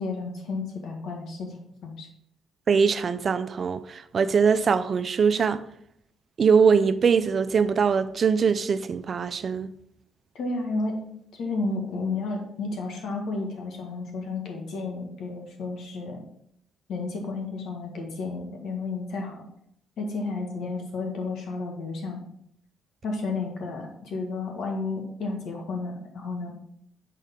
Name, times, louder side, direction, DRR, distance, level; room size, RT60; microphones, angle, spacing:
voice 1, 0.0-1.6 1.8-2.1 10.3-11.0 11.3-16.2 16.9-19.4 20.0-22.2 23.0-26.6, left 3 dB, 75° left, 1.6 m, -32 dB
voice 2, 2.7-5.7 6.4-9.7, right 6 dB, 45° right, 0.4 m, -22 dB
6.5 x 5.5 x 3.7 m
cardioid pair, 90°, 0 cm